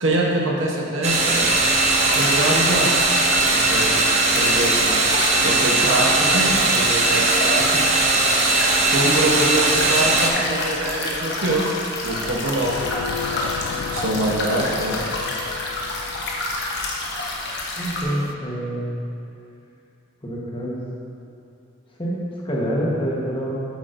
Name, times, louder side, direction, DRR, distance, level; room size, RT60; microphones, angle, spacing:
voice 1, 0.0-1.5 2.1-3.1 3.5-3.9 4.3-4.9 5.4-7.6 8.9-11.7 12.0-12.7 13.9-15.0, right 1 dB, 70° right, -1 dB, 1.1 m, -24 dB
sound 1, 1.0-10.3, right 3 dB, 30° right, 0.7 m, -19 dB
sound 2, 1.4-18.0, left 2 dB, 55° left, 1.0 m, -28 dB
sound 3, 12.6-18.3, left 8 dB, 85° left, 0.3 m, -34 dB
voice 2, 17.8-19.0 20.2-20.8 22.0-22.2 22.4-23.7, equal, 25° left, -5 dB, 1.2 m, -26 dB
8.4 x 8.1 x 2.6 m, 2.6 s
head